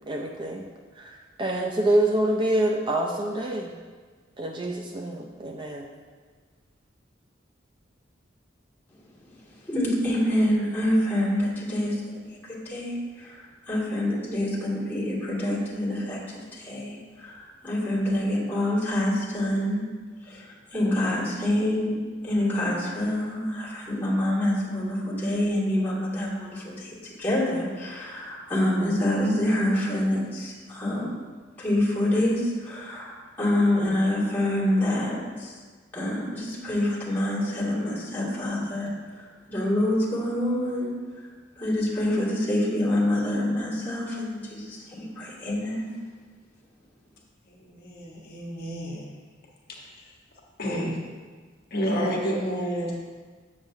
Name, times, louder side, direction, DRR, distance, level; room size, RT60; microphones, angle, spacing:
voice 1, 0.1-0.7 1.0-3.8 4.4-5.9, right 1 dB, 25° right, 1 dB, 0.4 m, -26 dB
voice 2, 9.6-19.8 20.2-21.9 22.2-31.1 31.6-35.5 35.9-40.9 41.6-45.8, left 1 dB, 10° left, -7 dB, 2.1 m, -26 dB
voice 3, 47.8-49.1 50.6-50.9 51.7-53.0, equal, 55° left, -2 dB, 1.1 m, -29 dB
7.9 x 6.9 x 2.7 m, 1.5 s
head